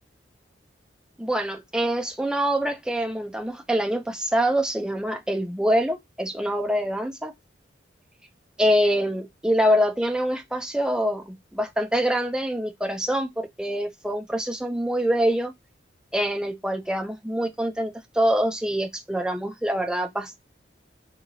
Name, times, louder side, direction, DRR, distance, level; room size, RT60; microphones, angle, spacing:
voice 1, 1.2-7.3 8.6-15.5 16.1-20.4, equal, 5° right, 0.4 m, -25 dB
2.9 x 2.8 x 2.7 m
head